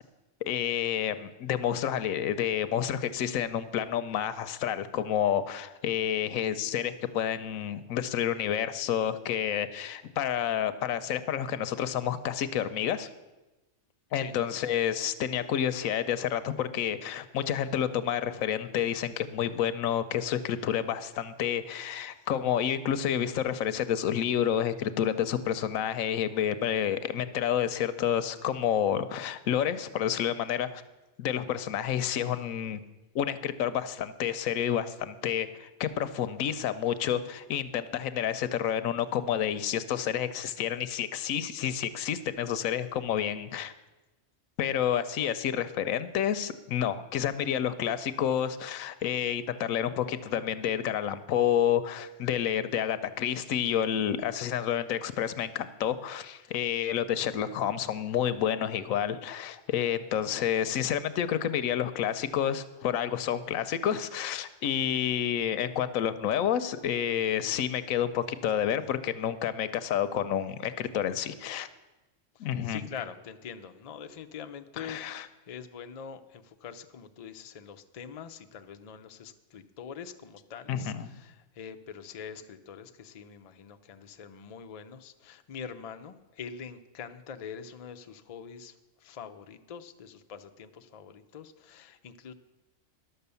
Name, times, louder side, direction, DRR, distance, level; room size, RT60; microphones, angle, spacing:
voice 1, 0.5-13.1 14.1-30.8 31.2-32.8 33.1-43.7 44.6-71.7 72.4-72.8 74.8-75.3 80.7-81.1, left 9 dB, 90° left, 13 dB, 1.1 m, -29 dB
voice 2, 72.3-92.3, left 7 dB, 55° left, 8 dB, 0.4 m, -44 dB
11.5 x 6.7 x 6.9 m, 1.1 s
omnidirectional pair, 1.4 m